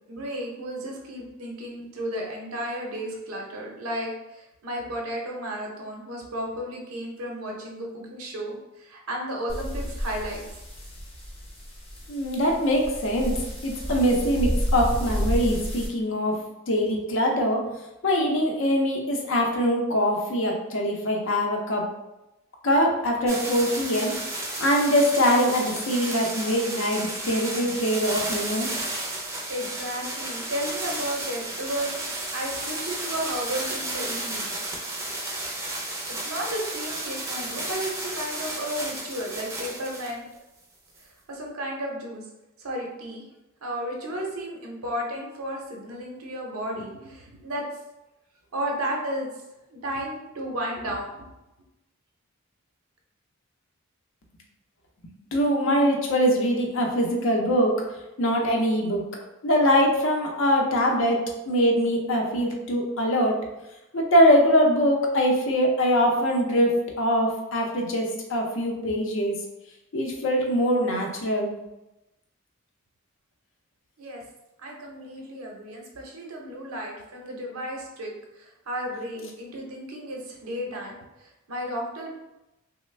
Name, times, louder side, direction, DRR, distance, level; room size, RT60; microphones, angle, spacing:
voice 1, 0.1-10.4 16.1-16.2 29.5-34.7 36.2-40.3 41.3-42.3 42.6-43.2 43.6-47.6 48.5-49.3 49.7-51.3 74.0-74.2 74.6-82.2, equal, 90° right, 0 dB, 0.7 m, -33 dB
sound 1, 9.5-15.9, equal, 25° left, 0.8 m, -31 dB
voice 2, 12.1-13.3 13.6-16.3 16.7-17.6 18.0-21.8 22.6-24.1 24.6-28.7 55.3-57.7 58.2-59.0 59.4-63.4 63.9-69.3 69.9-71.6, equal, 65° left, 1 dB, 0.6 m, -23 dB
sound 2, 23.3-40.1 41.0-41.1, right 2 dB, 15° right, 0.5 m, -33 dB
3.2 x 2.1 x 3.2 m, 0.97 s
head